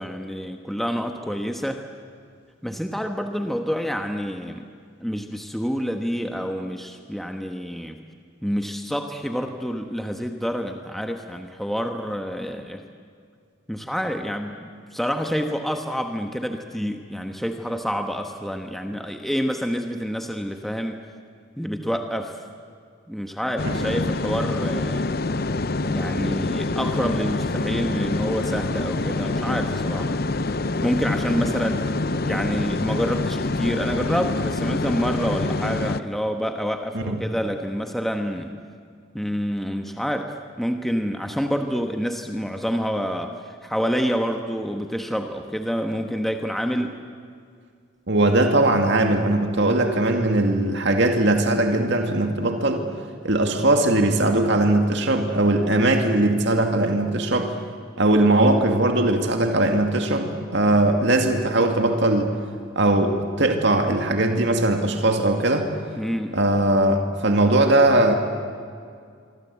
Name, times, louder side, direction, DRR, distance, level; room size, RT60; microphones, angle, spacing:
voice 1, 0.0-1.8 2.6-4.7 5.0-8.0 8.4-12.8 13.7-21.0 21.6-22.4 23.1-25.2 25.9-30.2 30.8-38.5 39.1-47.0 66.0-66.4, equal, ahead, 4 dB, 1.2 m, -28 dB
sound 1, 23.6-36.0, left 2 dB, 50° left, 0.7 m, -26 dB
voice 2, 48.1-52.8 53.2-57.5 58.0-62.3 62.8-65.7 66.3-68.2, right 2 dB, 55° right, 4 dB, 2.3 m, -20 dB
26.0 x 24.0 x 8.3 m, 2.2 s
head